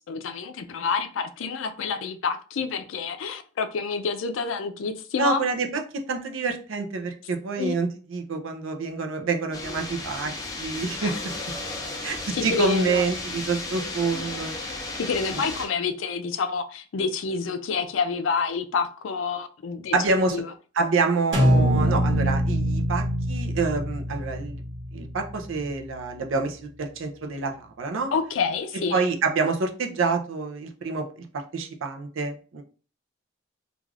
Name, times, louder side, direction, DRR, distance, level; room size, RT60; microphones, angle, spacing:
voice 1, 0.1-5.4 7.6-7.7 11.0-11.2 12.3-13.0 15.0-19.9 20.3-20.5 28.1-29.0, left 5 dB, 85° left, 0.4 m, -28 dB
voice 2, 5.2-10.3 10.6-11.3 12.0-14.6 15.3-15.4 19.9-20.4 20.8-24.6 24.9-28.1 28.9-31.2 31.5-32.6, right 4 dB, 90° right, 0.5 m, -27 dB
sound 1, 9.5-15.7, left 2 dB, 20° left, 0.5 m, -34 dB
sound 2, 21.3-25.5, equal, 65° right, 1.0 m, -24 dB
2.4 x 2.4 x 3.2 m
head